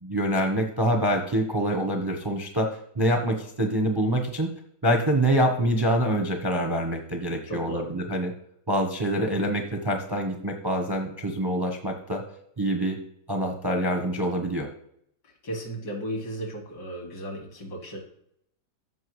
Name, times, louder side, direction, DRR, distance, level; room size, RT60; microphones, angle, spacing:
voice 1, 0.0-2.7 3.0-4.5 4.8-8.3 8.7-12.2 12.6-13.0 13.3-14.7, right 1 dB, 25° right, 3 dB, 0.5 m, -25 dB
voice 2, 7.5-8.0 15.2-18.0, right 1 dB, 65° left, 1 dB, 2.6 m, -35 dB
14.5 x 5.5 x 3.1 m, 0.70 s
omnidirectional pair, 2.0 m